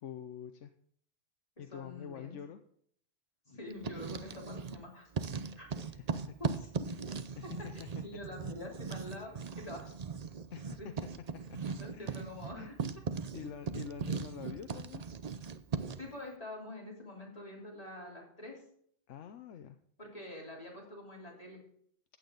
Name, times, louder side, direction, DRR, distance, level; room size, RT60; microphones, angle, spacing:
voice 1, 0.0-0.7 1.6-2.6 5.8-6.3 7.0-7.9 10.5-10.9 11.5-11.6 11.9-12.2 12.5-12.7 13.3-15.1 19.1-19.8, left 9 dB, 85° left, 8 dB, 1.1 m, -46 dB
voice 2, 1.7-2.4 3.5-5.1 5.6-5.7 6.4-6.9 7.4-7.5 8.0-10.0 10.7-10.9 11.8-12.7 16.0-18.6 20.0-21.6, left 1 dB, 30° left, -2 dB, 3.6 m, -46 dB
Writing, 3.7-4.8 5.1-16.1, right 5 dB, 40° right, 0.6 m, -39 dB
15.0 x 9.1 x 3.9 m, 0.65 s
omnidirectional pair, 1.2 m